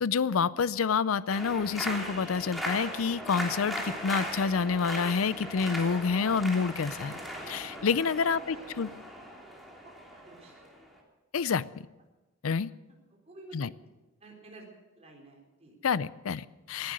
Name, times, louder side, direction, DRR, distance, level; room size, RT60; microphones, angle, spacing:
voice 1, 0.0-7.2 7.5-8.9 11.3-11.6 12.4-12.7 13.5-13.7 15.8-16.9, left 5 dB, 85° left, 0.5 m, -28 dB
sound 1, 1.3-11.0, equal, ahead, 3.1 m, -38 dB
voice 2, 8.4-8.8 10.1-10.6 13.3-13.6 14.2-14.7 14.9-15.7 16.8-16.9, right 2 dB, 30° right, 4.2 m, -50 dB
18.0 x 11.5 x 6.5 m
head